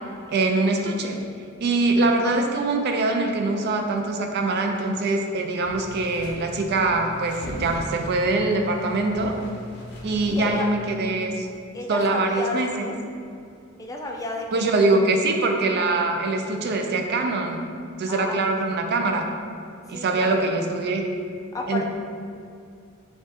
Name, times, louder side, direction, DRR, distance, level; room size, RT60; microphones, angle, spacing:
voice 1, 0.3-1.2 1.6-9.4 10.0-11.5 11.9-12.9 14.5-17.6 18.0-19.3 19.9-21.0 21.7-21.8, right 2 dB, 50° right, 3 dB, 0.4 m, -23 dB
sound 1, 5.6-11.1, left 1 dB, 55° left, 0.8 m, -39 dB
voice 2, 10.3-10.7 11.7-13.0 13.8-14.7 14.9-15.1 18.1-18.4 19.9-20.5 21.5-21.8, left 2 dB, 15° left, 0 dB, 0.3 m, -32 dB
3.6 x 2.4 x 4.0 m, 2.5 s
head